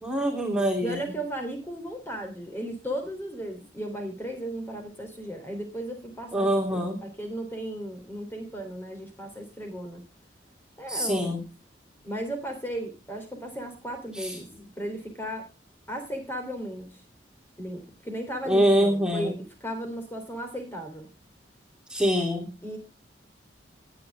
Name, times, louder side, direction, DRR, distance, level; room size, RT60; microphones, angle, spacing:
voice 1, 0.0-1.0 6.3-7.0 10.9-11.4 14.2-14.3 18.5-19.3 21.9-22.5, equal, 5° right, 1 dB, 3.3 m, -24 dB
voice 2, 0.8-10.0 10.8-11.4 12.0-14.5 14.8-15.5 15.9-17.0 17.6-21.1 22.6-22.8, right 1 dB, 10° left, 4 dB, 3.4 m, -35 dB
18.5 x 9.8 x 3.5 m, 0.29 s
head